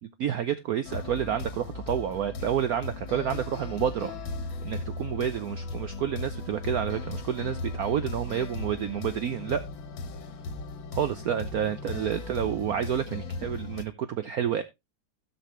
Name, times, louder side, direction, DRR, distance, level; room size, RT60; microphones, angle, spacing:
voice 1, 0.2-4.1 4.6-9.6 10.9-14.6, right 9 dB, 70° right, 0.9 m, -29 dB
sound 1, 0.8-13.8, left 3 dB, 75° left, 1.9 m, -37 dB
16.5 x 5.7 x 3.1 m
omnidirectional pair, 2.2 m